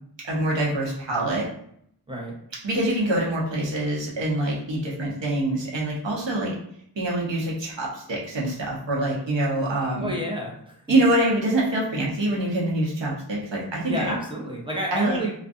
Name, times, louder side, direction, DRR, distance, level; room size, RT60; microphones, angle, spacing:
voice 1, 0.3-1.5 2.6-6.5 7.0-10.1 10.9-14.1 14.9-15.2, right 1 dB, 80° right, -4 dB, 1.0 m, -25 dB
voice 2, 10.0-10.8 13.8-15.3, equal, 10° right, -3 dB, 0.8 m, -29 dB
2.4 x 2.3 x 2.6 m, 0.70 s
wide cardioid pair, 45°, 44 cm